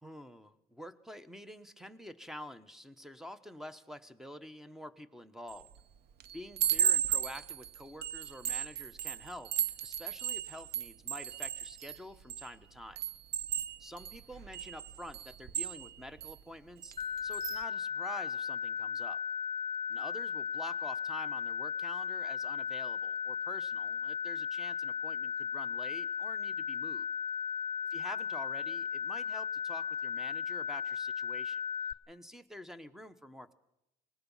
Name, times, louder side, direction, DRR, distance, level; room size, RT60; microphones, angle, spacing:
voice 1, 0.0-5.7 6.3-13.0 13.8-16.9 17.2-19.2 19.9-27.1 27.9-31.6 32.1-33.5, equal, ahead, 14 dB, 1.0 m, -48 dB
Chime, 5.5-5.8 6.2-12.5 13.0-16.3 16.8-17.0 17.3-17.6, right 9 dB, 70° right, 1.0 m, -35 dB
sound 1, 17.0-31.9, left 7 dB, 30° left, 0.6 m, -36 dB
24.0 x 20.0 x 5.6 m, 0.89 s
cardioid pair, 110°, 17 cm